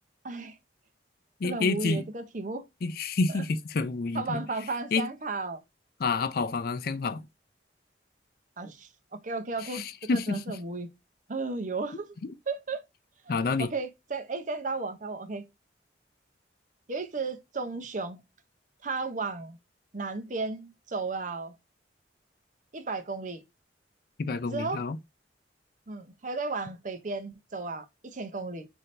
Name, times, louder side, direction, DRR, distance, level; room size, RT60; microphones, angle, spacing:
voice 1, 0.2-0.6 1.4-2.6 3.3-3.4 4.1-5.6 8.6-10.9 11.3-12.2 12.5-12.8 13.6-15.4 16.9-18.2 18.8-19.6 19.9-21.6 22.7-23.4 24.5-24.8 25.9-28.7, right 3 dB, 45° right, 0.7 m, -34 dB
voice 2, 1.4-2.0 2.8-4.4 4.9-5.1 6.0-7.2 9.7-10.4 13.3-13.7 24.2-25.0, left 3 dB, 55° left, 0.4 m, -28 dB
5.7 x 2.7 x 3.2 m
head